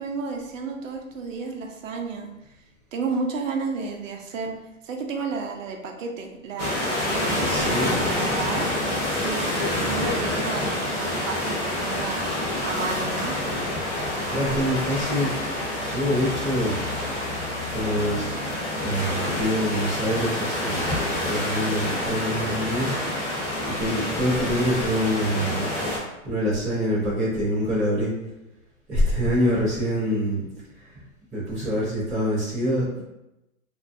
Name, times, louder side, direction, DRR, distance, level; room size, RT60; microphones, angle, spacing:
voice 1, 0.0-2.3 2.9-4.5 4.8-8.7 9.1-13.4, right 4 dB, 65° right, 3 dB, 0.6 m, -32 dB
sound 1, 6.6-26.0, left 1 dB, 20° left, 0.8 m, -27 dB
voice 2, 7.4-7.9 14.3-15.3 15.8-16.8 17.7-18.3 18.8-20.9 21.2-23.0 23.6-25.7 26.2-28.1 28.9-30.5 30.8-30.9 31.3-33.0, equal, ahead, -18 dB, 0.3 m, -25 dB
2.5 x 2.2 x 2.4 m, 0.93 s
hypercardioid pair, 135°, 41 cm